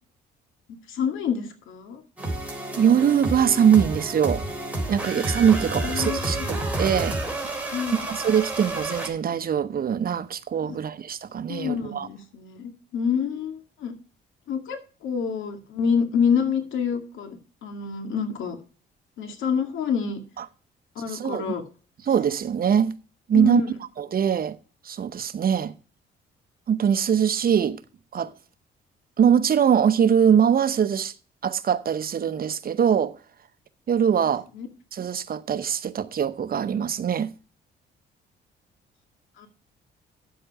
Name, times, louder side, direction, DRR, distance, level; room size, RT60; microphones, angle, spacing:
voice 1, 0.9-2.0 5.8-6.5 7.7-8.1 10.6-10.8 11.5-13.9 14.5-18.6 19.2-20.2 21.0-21.6 23.3-23.7 34.5-34.7 39.4-39.5, left 6 dB, 85° left, 2.2 m, -27 dB
sound 1, 2.2-9.1, right 1 dB, 5° right, 3.5 m, -30 dB
voice 2, 2.7-4.4 4.9-7.2 7.9-12.1 20.4-20.5 21.1-21.5 22.1-23.0 23.3-23.6 24.0-24.6 24.8-25.7 26.7-27.8 28.1-28.3 29.2-31.1 31.4-33.2 33.9-34.4 34.9-37.3, right 8 dB, 50° right, 0.9 m, -22 dB
10.0 x 7.7 x 4.8 m
cardioid pair, 90°, 20 cm